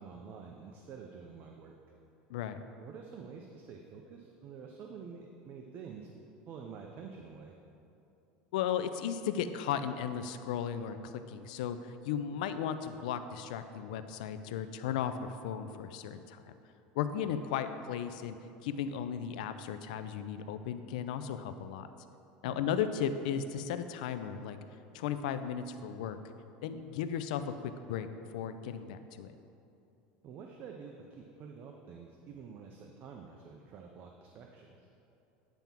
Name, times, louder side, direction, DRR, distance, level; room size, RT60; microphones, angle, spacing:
voice 1, 0.0-1.7 2.8-6.1 6.5-7.6 17.2-17.3 22.4-22.6 30.2-34.8, right 6 dB, 45° right, 2 dB, 0.6 m, -48 dB
voice 2, 8.5-16.6 17.0-18.4 18.6-21.9 22.4-24.6 24.9-26.2 26.6-28.1 28.3-29.3, left 8 dB, 80° left, 10 dB, 0.4 m, -35 dB
9.1 x 3.5 x 5.8 m, 2.8 s
supercardioid pair, 120°, 4 cm